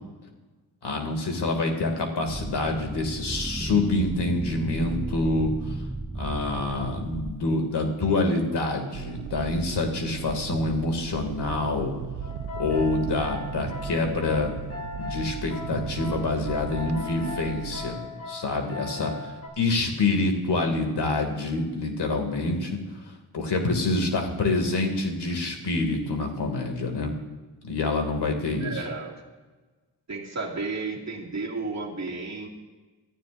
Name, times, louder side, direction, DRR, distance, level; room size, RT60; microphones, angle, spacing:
voice 1, 0.8-5.5 6.2-11.9 12.6-14.5 15.0-18.0 18.3-19.1 19.6-22.8 23.3-27.1 27.6-28.8, left 2 dB, 75° left, 3 dB, 2.4 m, -26 dB
sound 1, 2.3-7.3, right 2 dB, 10° right, 0.4 m, -34 dB
sound 2, 8.9-17.8, right 8 dB, 70° right, 0.8 m, -37 dB
sound 3, 12.2-19.5, left 3 dB, 35° left, 4.3 m, -38 dB
voice 2, 28.6-29.2 30.1-32.5, right 3 dB, 40° right, -1 dB, 2.4 m, -33 dB
25.0 x 13.5 x 2.6 m, 1.3 s
wide cardioid pair, 130°, 41 cm